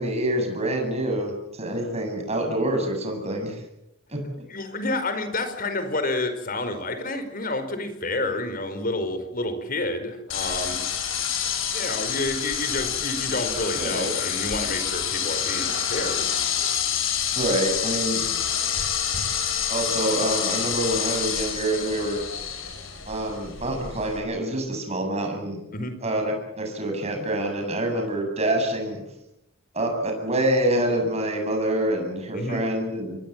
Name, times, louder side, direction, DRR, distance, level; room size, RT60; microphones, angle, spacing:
voice 1, 0.0-3.6 4.1-4.2 13.7-14.1 17.4-18.2 19.7-22.2 23.1-25.6 26.0-29.0 29.7-33.2, right 1 dB, 30° right, 3 dB, 7.9 m, -26 dB
voice 2, 4.5-10.8 11.7-16.3 25.7-26.0 32.3-32.6, left 2 dB, 45° left, 9 dB, 4.8 m, -29 dB
sound 1, 10.3-24.2, left 8 dB, 80° left, 6.6 m, -27 dB
27.5 x 22.5 x 7.5 m, 0.85 s
head